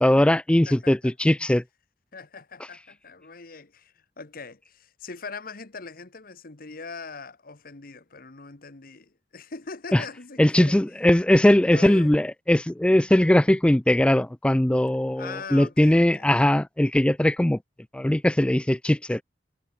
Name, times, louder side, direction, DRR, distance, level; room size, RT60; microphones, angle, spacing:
voice 1, 0.0-1.6 9.9-10.0 10.4-17.6 17.9-19.2, left 1 dB, 5° left, 0.4 m, -20 dB
voice 2, 0.7-1.1 2.1-10.8 11.7-12.2 15.2-16.3, left 4 dB, 55° left, 1.4 m, -41 dB
head